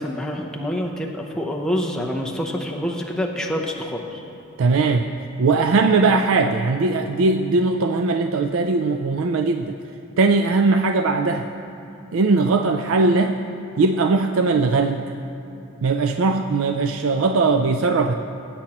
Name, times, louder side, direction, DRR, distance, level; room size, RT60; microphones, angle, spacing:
voice 1, 0.0-4.2, equal, 5° left, -1 dB, 0.7 m, -26 dB
voice 2, 4.6-5.1 5.4-9.8 10.2-11.5 12.1-13.4 13.8-15.0 15.8-18.1, right 3 dB, 75° right, 6 dB, 0.4 m, -19 dB
19.0 x 8.7 x 3.0 m, 2.7 s
head